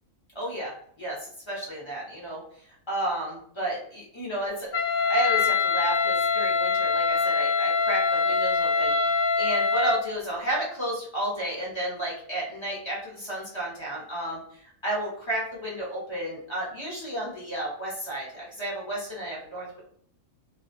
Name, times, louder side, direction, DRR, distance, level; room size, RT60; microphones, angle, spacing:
voice 1, 0.3-1.2 1.5-2.4 2.9-4.7 5.1-14.4 14.8-19.8, right 1 dB, 25° left, -6 dB, 0.8 m, -32 dB
Wind instrument woodwind instrument, 4.7-10.1, left 4 dB, 65° left, 1.0 m, -24 dB
2.5 x 2.2 x 2.5 m, 0.62 s
omnidirectional pair, 1.4 m